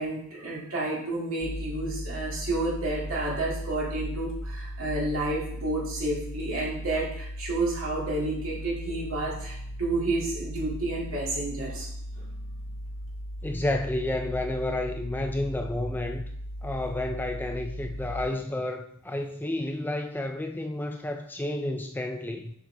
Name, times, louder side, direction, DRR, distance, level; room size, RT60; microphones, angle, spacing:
voice 1, 0.0-11.9, right 2 dB, 65° right, -4 dB, 2.4 m, -30 dB
sound 1, 1.4-18.3, equal, 50° left, 0.8 m, -37 dB
voice 2, 13.4-16.3 16.6-22.5, left 1 dB, 10° left, 4 dB, 0.3 m, -31 dB
7.2 x 5.8 x 3.4 m, 0.67 s
head